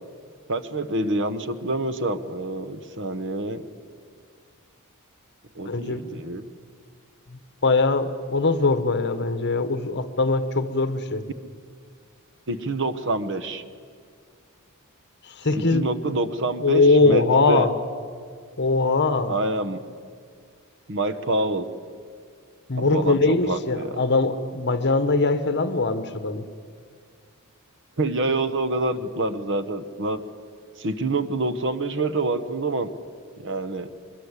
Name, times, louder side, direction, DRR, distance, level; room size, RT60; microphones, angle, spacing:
voice 1, 0.5-3.6 5.5-6.4 12.5-13.6 15.5-17.7 19.3-19.9 20.9-21.7 22.8-24.0 28.0-30.3 30.8-32.9 33.4-33.9, right 2 dB, 60° right, 13 dB, 1.1 m, -27 dB
voice 2, 5.6-6.2 7.3-11.2 15.2-15.9 16.6-17.7 18.6-19.3 22.7-26.4, left 3 dB, 55° left, 11 dB, 1.3 m, -21 dB
23.5 x 22.0 x 8.3 m, 2.1 s
head